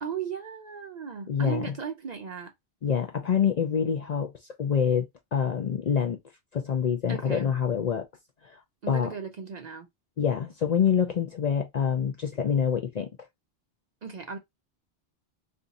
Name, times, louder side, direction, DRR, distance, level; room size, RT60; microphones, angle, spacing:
voice 1, 0.0-2.5 7.1-7.5 8.8-9.9 14.0-14.4, right 6 dB, 50° right, 0.5 m, -36 dB
voice 2, 1.3-1.7 2.8-4.3 4.6-6.2 6.5-8.1 8.4-8.5 8.9-9.1 10.2-13.1, left 7 dB, 55° left, 0.5 m, -26 dB
2.6 x 2.4 x 3.9 m
omnidirectional pair, 1.1 m